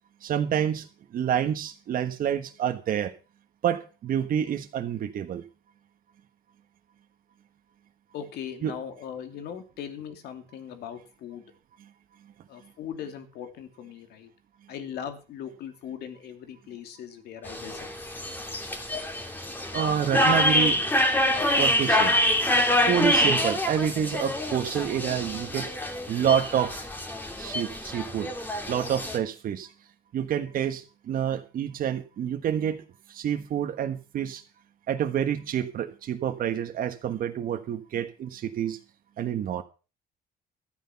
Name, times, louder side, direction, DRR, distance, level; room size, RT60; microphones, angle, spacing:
voice 1, 0.2-0.9 1.1-3.1 3.6-5.4 8.6-8.7 19.7-20.8 21.6-22.1 22.9-25.7 26.1-26.8 27.4-28.3 28.7-29.7 30.1-32.8 33.1-34.4 34.9-38.8 39.2-39.6, right 9 dB, 55° right, 6 dB, 1.4 m, -28 dB
voice 2, 8.1-11.4 12.5-14.3 14.7-18.4, left 8 dB, 75° left, 7 dB, 2.7 m, -39 dB
sound 1, 17.4-29.2, left 1 dB, 10° left, 2.7 m, -26 dB
13.0 x 9.6 x 5.8 m, 0.34 s
cardioid pair, 110°, 17 cm